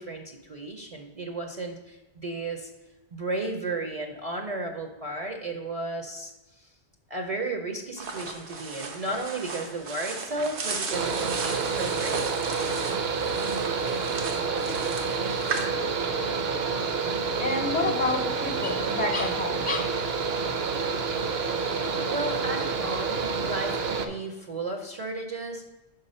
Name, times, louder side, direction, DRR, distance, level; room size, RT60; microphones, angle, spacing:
voice 1, 0.0-2.7 3.1-6.7 7.1-12.7 22.0-25.7, right 2 dB, 40° right, 3 dB, 0.6 m, -34 dB
sound 1, 8.0-15.6, right 4 dB, 85° right, 1.2 m, -36 dB
Mechanical fan, 10.9-24.1, right 5 dB, 65° right, 0.9 m, -28 dB
voice 2, 16.7-19.8, left 3 dB, 50° left, 5 dB, 0.8 m, -30 dB
5.7 x 4.0 x 5.4 m, 1.0 s
omnidirectional pair, 1.1 m